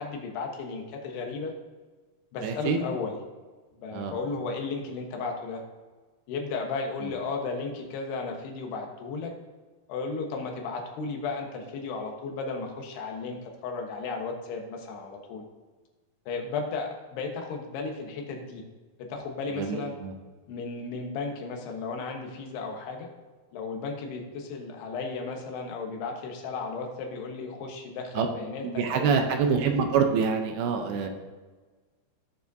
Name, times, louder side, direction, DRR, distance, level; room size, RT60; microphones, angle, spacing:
voice 1, 0.0-1.5 2.3-3.2 3.8-5.6 6.3-9.3 9.9-15.4 16.3-18.6 19.0-19.9 20.5-23.1 23.5-29.6, left 4 dB, 80° left, 2 dB, 3.2 m, -34 dB
voice 2, 2.4-2.8 3.9-4.1 19.6-20.1 28.2-28.3 28.6-31.1, right 6 dB, 80° right, 5 dB, 2.6 m, -26 dB
16.0 x 7.0 x 2.7 m, 1.3 s
omnidirectional pair, 4.6 m